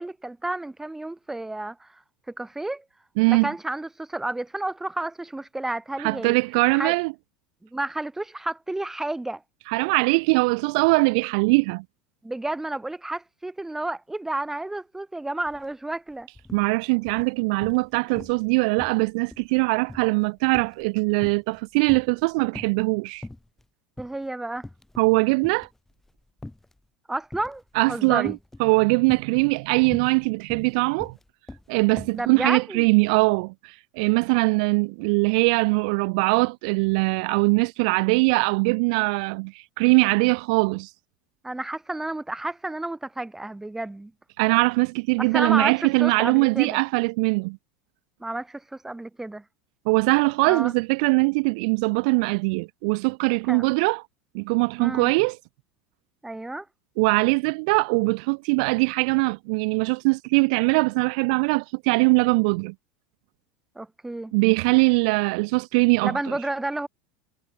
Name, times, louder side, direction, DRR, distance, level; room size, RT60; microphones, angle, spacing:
voice 1, 0.0-2.0 2.3-2.8 3.3-6.4 6.7-7.0 7.6-9.4 12.2-16.3 24.0-24.7 27.1-27.6 27.9-28.4 32.1-32.9 41.4-44.1 45.2-46.8 48.2-49.4 50.4-50.7 53.5-53.8 54.8-55.1 56.2-56.7 63.7-64.3 66.0-66.9, right 2 dB, 10° right, 2.8 m, -31 dB
voice 2, 3.2-3.5 6.0-7.1 9.7-11.8 16.5-23.2 25.0-25.7 27.8-31.1 31.7-40.9 44.4-47.6 49.9-54.0 54.3-55.4 57.0-62.7 64.3-66.2, right 30 dB, 65° right, 0.5 m, -22 dB
sound 1, 15.5-15.7 16.0-16.7 17.1-17.9 18.2-18.5 18.8-21.6 21.9-22.8 23.2-23.6 24.0-24.2 24.6-25.1 25.4-26.8 27.3-27.7 28.3-28.7 29.0-32.3, left 1 dB, 5° left, 2.2 m, -42 dB
hypercardioid pair, 85°, 4 cm